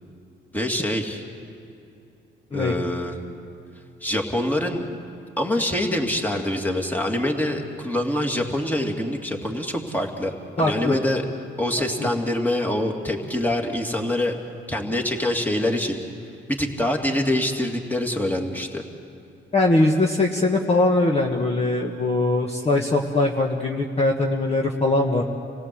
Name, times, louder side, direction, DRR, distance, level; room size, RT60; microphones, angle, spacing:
voice 1, 0.5-1.2 2.5-3.2 4.0-4.9 5.4-10.3 10.6-11.3 11.6-14.4 14.7-16.0 16.5-18.8, left 1 dB, 10° left, 2 dB, 2.6 m, -25 dB
voice 2, 10.6-10.9 12.0-12.1 19.5-25.2, left 2 dB, 30° left, 0 dB, 1.6 m, -21 dB
27.5 x 17.0 x 7.8 m, 2.5 s
cardioid pair, 90°, 20 cm